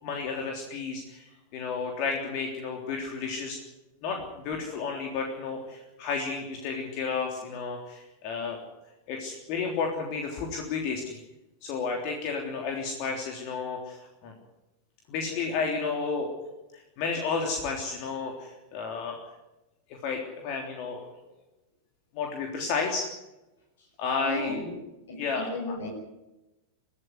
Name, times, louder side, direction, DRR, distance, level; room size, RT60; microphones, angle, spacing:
voice 1, 0.0-3.6 4.0-8.6 9.1-11.2 11.6-14.3 15.1-16.3 16.7-19.2 20.0-21.1 22.1-23.0 24.0-24.6 25.2-25.7, left 5 dB, 45° left, 1 dB, 3.4 m, -32 dB
voice 2, 24.2-24.8 25.1-25.9, left 2 dB, 60° left, 0 dB, 6.3 m, -35 dB
23.5 x 14.0 x 9.7 m, 1.0 s
figure-of-eight pair, 90°, 0 cm